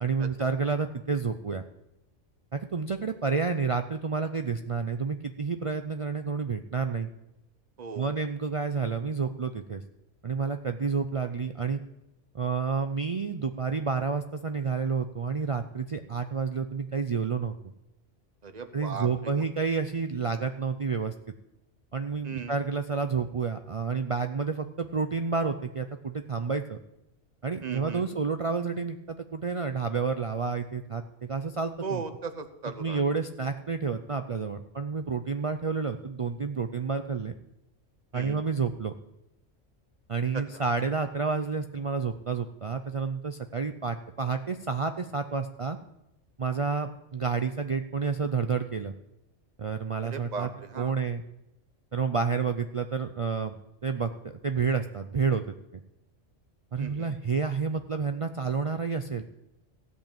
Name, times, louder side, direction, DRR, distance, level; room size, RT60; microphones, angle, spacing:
voice 1, 0.0-1.6 2.5-7.1 7.9-9.8 10.2-11.8 12.3-17.5 18.7-21.1 21.9-26.8 27.4-32.0 32.8-37.3 38.1-38.9 40.1-45.8 46.4-48.9 49.6-50.5 50.8-51.2 51.9-55.4 56.7-59.2, right 5 dB, 55° right, 7 dB, 0.3 m, -30 dB
voice 2, 7.8-8.1 18.4-19.4 22.2-22.6 27.6-28.1 31.8-33.0 38.1-38.4 40.3-40.6 50.0-50.9 56.8-57.1, right 5 dB, 35° right, 9 dB, 1.0 m, -37 dB
16.0 x 5.6 x 8.8 m, 0.90 s
omnidirectional pair, 1.3 m